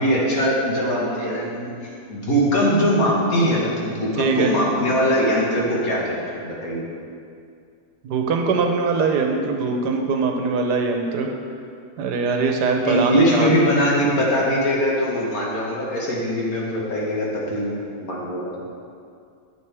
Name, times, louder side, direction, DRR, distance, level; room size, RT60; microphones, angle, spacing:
voice 1, 0.0-1.7 2.1-6.8 12.9-18.6, equal, 60° left, -4 dB, 1.9 m, -21 dB
voice 2, 4.2-4.5 8.0-11.3 12.0-13.5, right 4 dB, 75° right, 3 dB, 1.3 m, -22 dB
9.6 x 7.1 x 3.4 m, 2.3 s
omnidirectional pair, 1.8 m